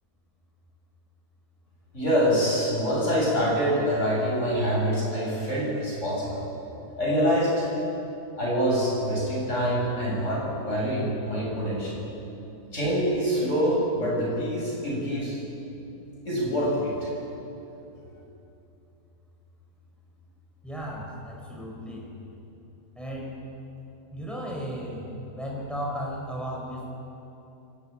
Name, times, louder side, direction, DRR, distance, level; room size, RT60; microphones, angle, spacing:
voice 1, 1.9-6.4 7.0-7.7 8.4-12.0 12.7-15.4 16.3-17.1, equal, 45° left, -5 dB, 7.6 m, -25 dB
voice 2, 20.6-22.1 23.0-23.4 24.1-26.9, equal, ahead, -3 dB, 5.3 m, -35 dB
24.5 x 13.5 x 9.2 m, 2.9 s
omnidirectional pair, 1.8 m